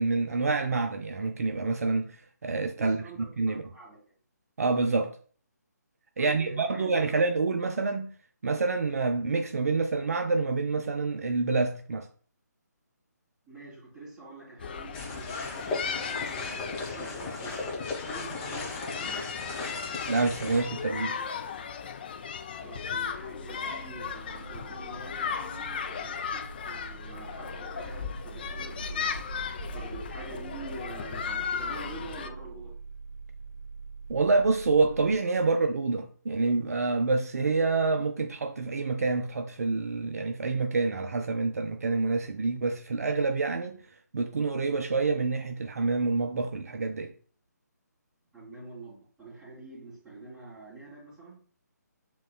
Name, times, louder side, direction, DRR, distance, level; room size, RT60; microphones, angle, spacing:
voice 1, 0.0-3.6 4.6-5.2 6.2-8.1 8.4-12.1 20.1-21.2 34.1-43.8 44.1-47.1, right 3 dB, 55° right, 0.5 m, -27 dB
voice 2, 2.7-4.0 6.2-7.1 13.4-19.2 22.6-29.1 29.7-32.7 48.3-51.4, right 2 dB, 10° right, 2.3 m, -46 dB
sound 1, 14.6-32.3, left 6 dB, 30° left, 0.4 m, -36 dB
sound 2, 14.9-20.6, left 3 dB, 15° left, 0.8 m, -36 dB
sound 3, 22.7-35.2, right 4 dB, 60° left, 1.5 m, -44 dB
7.3 x 3.0 x 2.3 m
figure-of-eight pair, 145°, 10 cm